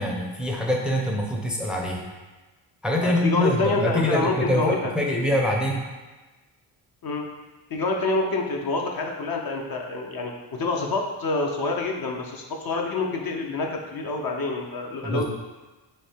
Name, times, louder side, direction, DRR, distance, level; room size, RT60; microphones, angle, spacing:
voice 1, 0.0-2.0 2.8-5.8 15.0-15.2, left 1 dB, ahead, 0 dB, 0.5 m, -24 dB
voice 2, 3.0-4.9 7.0-7.3 7.7-15.2, left 3 dB, 50° left, 1 dB, 0.7 m, -27 dB
3.3 x 2.7 x 4.3 m, 1.2 s
cardioid pair, 55°, 48 cm